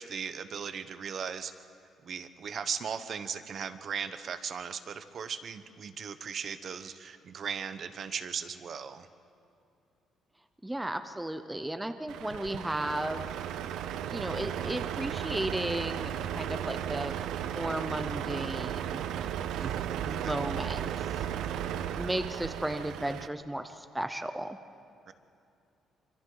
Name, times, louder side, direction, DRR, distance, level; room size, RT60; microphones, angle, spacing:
voice 1, 0.0-1.5 2.0-9.1 19.6-20.3 25.1-25.2, right 7 dB, 45° right, 11 dB, 0.9 m, -38 dB
voice 2, 10.6-13.2 14.1-17.1 17.5-19.0 20.0-20.9 22.0-24.6, right 1 dB, 5° right, 8 dB, 0.6 m, -34 dB
Truck, 12.1-23.3, right 10 dB, 80° right, 0.7 m, -35 dB
26.0 x 25.5 x 3.9 m, 2.6 s
cardioid pair, 155°, 0 cm